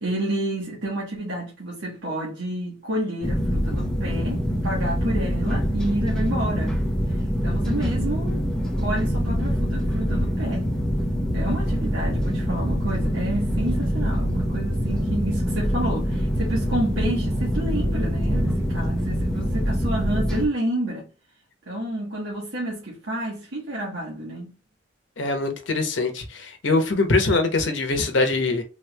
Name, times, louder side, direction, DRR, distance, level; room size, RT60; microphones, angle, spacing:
voice 1, 0.0-6.8 7.1-8.4 8.8-10.7 11.3-21.1 21.7-24.5, right 1 dB, 90° right, 1.2 m, -29 dB
sound 1, 3.2-20.5, equal, 5° left, 0.6 m, -24 dB
voice 2, 25.2-28.6, left 3 dB, 85° left, 0.9 m, -23 dB
3.4 x 3.1 x 2.2 m
head